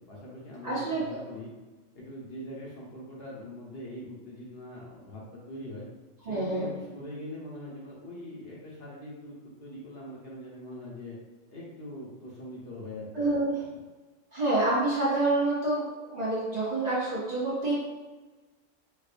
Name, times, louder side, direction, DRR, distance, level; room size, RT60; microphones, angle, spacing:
voice 1, 0.1-1.5 1.9-5.9 6.2-11.2 11.5-13.8, left 1 dB, 55° left, -4 dB, 0.9 m, -42 dB
voice 2, 0.6-1.2 6.3-6.7 13.1-13.6 14.3-17.9, right 2 dB, 40° right, -8 dB, 0.7 m, -27 dB
4.5 x 2.3 x 2.4 m, 1.2 s
omnidirectional pair, 1.3 m